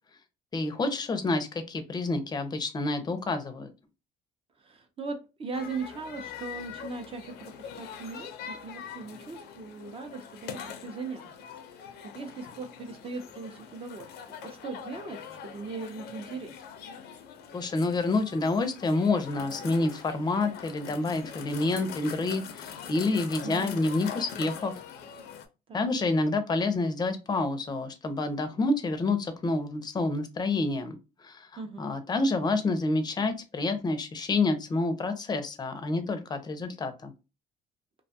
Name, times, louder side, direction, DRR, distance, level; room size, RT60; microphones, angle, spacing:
voice 1, 0.5-3.7 17.5-24.7 25.7-31.0 31.2-31.5 31.8-37.1, left 3 dB, 25° left, 8 dB, 0.5 m, -28 dB
voice 2, 4.6-11.3 11.8-14.1 14.4-16.5 23.4-23.7 25.7-25.9 31.6-32.0, right 4 dB, 35° right, 6 dB, 0.6 m, -39 dB
sound 1, 5.5-25.5, left 7 dB, 75° left, 0.5 m, -43 dB
2.4 x 2.2 x 2.7 m, 0.28 s
cardioid pair, 110°, 17 cm